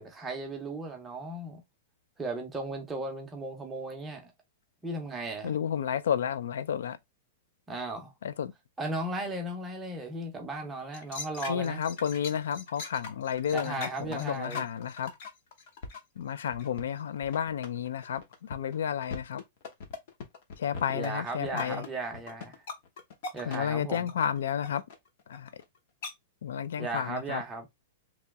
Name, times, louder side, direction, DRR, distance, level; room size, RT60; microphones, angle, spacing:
voice 1, 0.0-1.6 2.2-4.2 4.8-5.6 7.7-8.1 8.8-11.8 13.5-14.7 20.9-22.6 23.3-24.1 26.8-27.7, right 2 dB, 10° right, 0.6 m, -36 dB
voice 2, 5.4-7.0 8.2-8.5 11.5-15.1 16.2-19.4 20.6-21.8 23.5-24.8 25.3-25.5 26.4-27.4, left 8 dB, 90° left, 0.4 m, -31 dB
sound 1, 10.9-16.9 17.2-25.8 26.0-26.1, left 4 dB, 45° left, 0.8 m, -40 dB
3.0 x 2.8 x 3.4 m
supercardioid pair, 180°, 0 cm